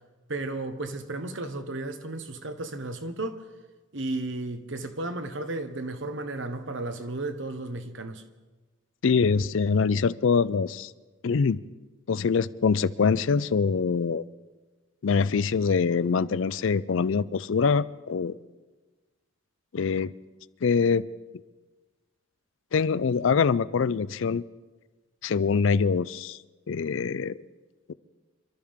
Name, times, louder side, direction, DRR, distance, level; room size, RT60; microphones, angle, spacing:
voice 1, 0.3-3.4 3.9-8.2, right 2 dB, 65° right, 1.1 m, -33 dB
voice 2, 9.0-10.9 11.2-11.6 12.1-14.2 15.0-18.3 19.7-20.1 20.6-21.1 22.7-24.4 25.2-26.4 26.7-27.3, left 5 dB, 70° left, 0.4 m, -24 dB
26.5 x 13.0 x 3.6 m
head